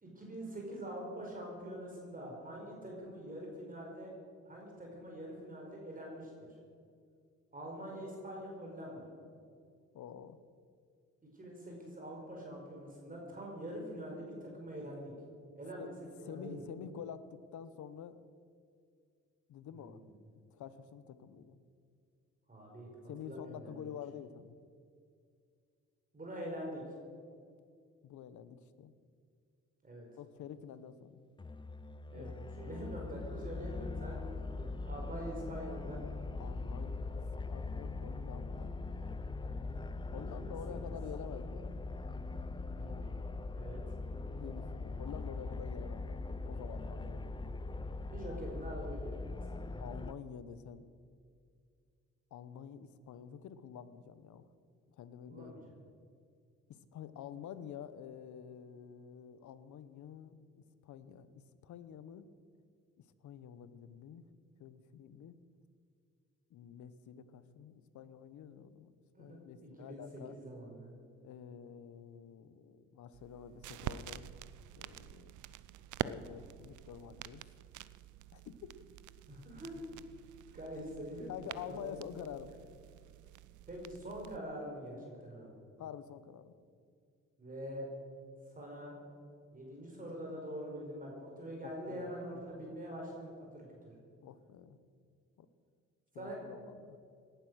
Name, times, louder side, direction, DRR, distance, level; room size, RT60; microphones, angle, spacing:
voice 1, 0.0-4.1 4.4-6.5 7.5-9.1 11.3-15.1 15.6-15.9 16.2-16.6 19.7-20.1 22.5-22.9 23.2-23.9 26.1-26.8 29.8-30.0 32.1-32.3 32.6-36.1 40.1-40.8 42.8-43.2 43.5-43.8 48.1-49.6 55.3-55.7 69.1-70.9 79.3-79.9 80.5-81.3 81.6-82.0 83.7-85.5 87.4-87.8 88.5-89.0 89.5-93.9 96.1-96.4, equal, 30° right, -1 dB, 4.7 m, -45 dB
voice 2, 9.9-10.4 15.8-15.9 16.2-18.2 19.5-20.0 20.5-21.6 23.1-24.5 28.0-28.9 30.2-31.2 32.1-32.3 32.6-32.7 36.4-38.8 40.1-41.8 44.4-47.3 48.2-48.4 49.8-50.9 52.3-54.5 55.0-55.7 56.7-62.3 63.0-64.2 64.6-65.3 66.5-68.9 69.2-70.4 71.2-74.3 74.8-75.4 76.0-77.4 78.3-78.7 81.3-82.5 85.8-86.5 91.6-92.8 94.2-94.8 95.4-95.5 96.1-97.0, left 8 dB, 75° left, 13 dB, 1.1 m, -48 dB
sound 1, 31.4-50.1, left 3 dB, 15° left, 0.7 m, -41 dB
sound 2, 73.1-84.4, right 12 dB, 75° right, 0.6 m, -47 dB
18.0 x 11.5 x 6.3 m, 2.2 s
cardioid pair, 90°, 30 cm